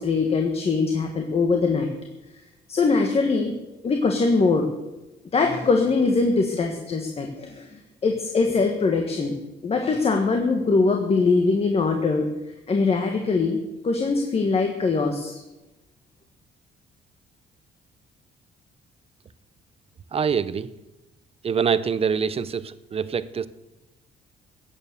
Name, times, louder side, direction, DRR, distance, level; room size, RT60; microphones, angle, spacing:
voice 1, 0.0-1.9 2.7-3.5 3.8-4.7 5.3-9.3 9.6-12.3 12.7-15.3, left 4 dB, 35° left, 3 dB, 1.6 m, -22 dB
voice 2, 20.1-20.7 21.4-23.5, right 6 dB, 30° right, 16 dB, 0.7 m, -25 dB
16.0 x 9.7 x 6.8 m, 0.99 s
cardioid pair, 145°, 19 cm